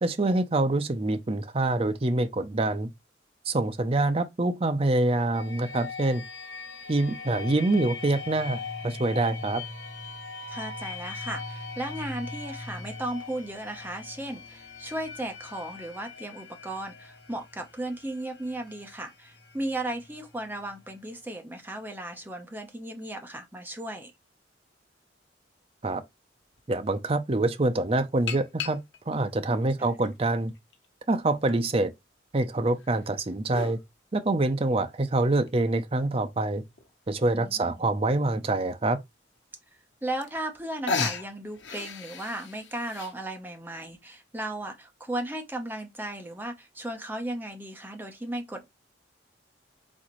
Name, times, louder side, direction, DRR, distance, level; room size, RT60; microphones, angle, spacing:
voice 1, 0.0-2.9 3.5-6.2 6.9-9.6 25.8-26.0 26.7-30.5 31.1-31.9 32.3-33.8 34.1-36.6 37.1-39.0, right 2 dB, 30° right, 0.6 m, -26 dB
sound 1, 5.3-21.0, left 4 dB, 65° left, 1.2 m, -41 dB
voice 2, 10.5-24.1 29.8-29.9 37.3-37.7 40.0-48.7, right 1 dB, 10° right, 0.9 m, -36 dB
sound 2, 26.5-26.6 28.3-29.2 29.9-30.9 31.5-31.6 32.8-33.8 35.5-35.6 36.1-36.2 36.3-36.4 36.8-37.1 38.1-38.2 38.7-38.8 39.9-40.0 40.2-40.6 40.9-43.1, left 5 dB, 85° left, 1.0 m, -34 dB
4.2 x 4.0 x 3.1 m
head